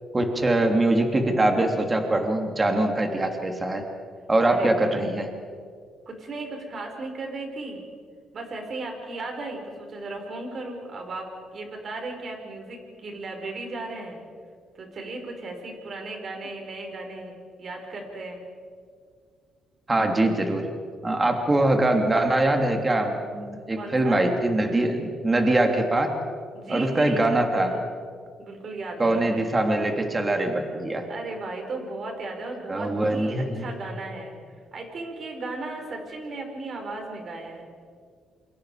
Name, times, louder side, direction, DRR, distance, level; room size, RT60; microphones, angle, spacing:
voice 1, 0.1-3.8 4.3-5.3 19.9-20.7 21.0-26.1 26.7-27.7 29.0-31.1 32.7-33.6, right 1 dB, 20° right, 4 dB, 3.1 m, -23 dB
voice 2, 4.4-5.0 6.1-7.8 8.3-14.2 14.7-18.4 23.8-24.2 26.5-27.9 28.4-29.5 31.1-34.4 34.7-37.6, right 2 dB, 50° right, 3 dB, 5.6 m, -36 dB
28.5 x 25.0 x 5.1 m, 2.1 s
cardioid pair, 90°, 0 cm